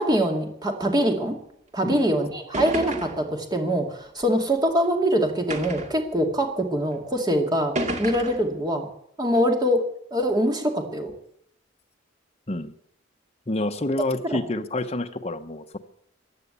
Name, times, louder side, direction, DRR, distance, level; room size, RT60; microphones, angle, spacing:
voice 1, 0.0-1.3 1.7-7.7 8.0-8.9 9.2-9.8 10.1-11.1 14.3-14.4, equal, 20° right, 3 dB, 2.4 m, -23 dB
sound 1, 1.9-2.0 2.5-3.3 4.2-4.3 5.5-6.0 6.9-7.0 7.8-8.5, right 1 dB, 40° right, 2.0 m, -31 dB
voice 2, 13.5-15.8, left 2 dB, 35° left, 7 dB, 1.0 m, -28 dB
15.5 x 9.9 x 8.3 m, 0.71 s
head